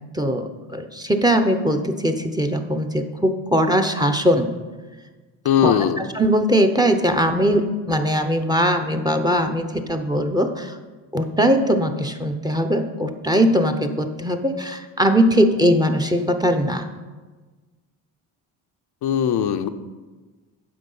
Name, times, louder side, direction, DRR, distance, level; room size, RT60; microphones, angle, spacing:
voice 1, 0.1-4.5 5.6-10.8 11.1-16.8, equal, 10° right, 7 dB, 0.8 m, -20 dB
voice 2, 5.4-6.0 19.0-19.7, left 8 dB, 60° left, 8 dB, 0.7 m, -19 dB
9.6 x 6.0 x 5.5 m, 1.3 s
supercardioid pair, 80°, 44 cm